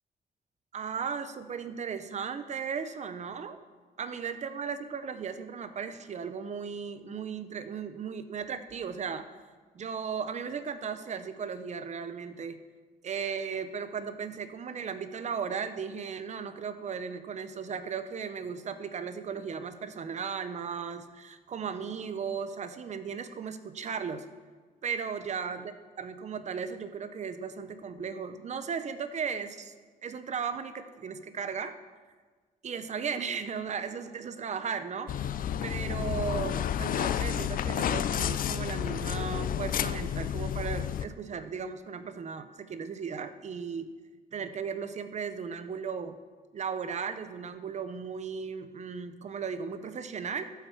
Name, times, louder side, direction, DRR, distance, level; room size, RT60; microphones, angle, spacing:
voice 1, 0.7-3.6 4.0-9.3 9.7-12.6 13.0-24.2 24.8-29.7 30.0-31.8 32.6-35.3 35.6-43.9 44.3-46.2 46.5-50.5, right 6 dB, 45° right, 11 dB, 0.6 m, -36 dB
sound 1, 35.1-41.1, left 9 dB, 55° left, 0.4 m, -30 dB
13.0 x 5.7 x 7.0 m, 1.4 s
wide cardioid pair, 160°, 17 cm